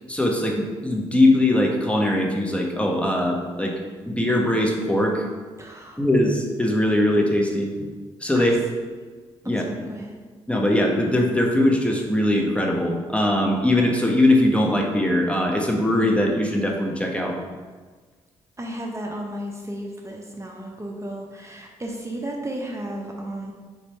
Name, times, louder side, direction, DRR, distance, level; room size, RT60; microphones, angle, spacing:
voice 1, 0.1-3.8 4.1-5.3 6.0-7.7 8.2-8.5 9.4-9.6 10.5-17.4, left 1 dB, 10° left, 1 dB, 0.9 m, -21 dB
voice 2, 5.6-6.0 8.3-8.6 9.4-10.2 18.6-23.5, right 1 dB, 20° right, 0 dB, 0.8 m, -34 dB
4.0 x 3.0 x 4.3 m, 1.4 s
hypercardioid pair, 45°, 13 cm